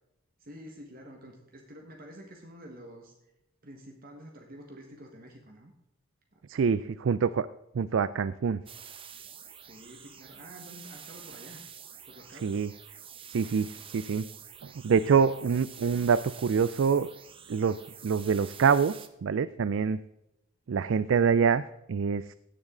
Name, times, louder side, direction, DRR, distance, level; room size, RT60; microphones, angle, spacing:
voice 1, 0.4-3.3 3.6-5.7 6.3-6.4 9.6-11.6 12.1-12.7, equal, 45° right, 2 dB, 1.5 m, -49 dB
voice 2, 6.5-7.5 7.7-8.6 12.4-12.7 13.3-14.3 14.6-17.1 17.5-17.8 18.0-20.0 20.7-21.6 21.9-22.3, right 6 dB, 60° right, 16 dB, 0.4 m, -25 dB
sound 1, 8.7-19.1, right 8 dB, 25° right, 0.7 m, -48 dB
16.0 x 7.2 x 3.8 m, 0.89 s
head